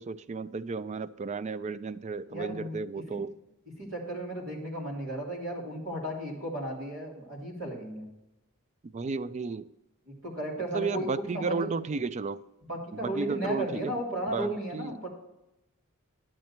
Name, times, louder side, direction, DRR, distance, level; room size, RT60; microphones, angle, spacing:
voice 1, 0.0-3.3 8.8-9.7 10.7-12.4 12.9-13.9 14.3-14.9, right 4 dB, 30° right, 0.3 m, -33 dB
voice 2, 2.3-2.8 3.1-3.2 3.8-8.1 10.1-11.7 12.7-15.1, right 1 dB, 65° right, 3.3 m, -34 dB
10.5 x 7.5 x 4.4 m
head